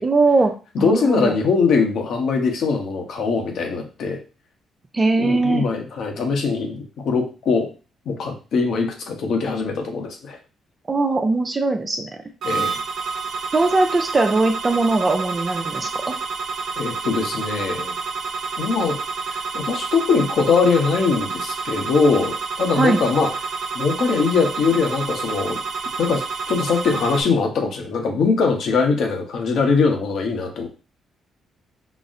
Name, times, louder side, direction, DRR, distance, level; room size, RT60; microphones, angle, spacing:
voice 1, 0.0-1.4 4.9-5.7 10.9-12.1 13.5-16.2 22.7-23.0, right 3 dB, 30° right, 6 dB, 0.5 m, -20 dB
voice 2, 0.7-4.2 5.2-7.7 8.1-10.4 12.4-12.8 16.8-17.9 18.6-19.0 19.3-23.3 23.7-25.6 26.0-30.7, left 4 dB, 70° left, 3 dB, 0.8 m, -21 dB
sound 1, 12.4-27.2, right 4 dB, 70° right, 0.6 m, -29 dB
3.9 x 2.0 x 2.5 m, 0.33 s
cardioid pair, 90°, 0 cm